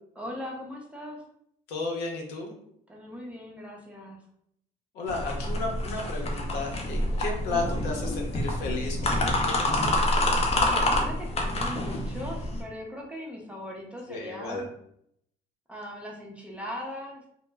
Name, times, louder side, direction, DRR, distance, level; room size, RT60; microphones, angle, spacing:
voice 1, 0.2-1.2 2.9-4.2 10.5-14.7 15.7-17.2, left 1 dB, 5° right, -2 dB, 0.6 m, -39 dB
voice 2, 1.7-2.5 4.9-9.9 14.1-14.6, left 3 dB, 85° left, 0 dB, 0.7 m, -33 dB
sound 1, 5.1-12.6, left 1 dB, 40° left, 0.6 m, -27 dB
2.0 x 2.0 x 3.3 m, 0.70 s
cardioid pair, 110°, 17 cm